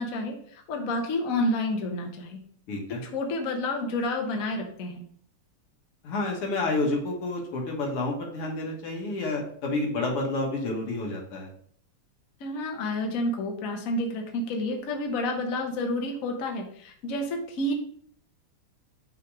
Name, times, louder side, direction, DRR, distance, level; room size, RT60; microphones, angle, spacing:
voice 1, 0.0-2.4 3.0-5.0 12.4-17.7, left 1 dB, 50° left, 3 dB, 1.1 m, -29 dB
voice 2, 2.7-3.0 6.0-11.5, left 2 dB, 85° left, 0 dB, 2.4 m, -29 dB
5.8 x 3.8 x 4.8 m, 0.62 s
omnidirectional pair, 2.4 m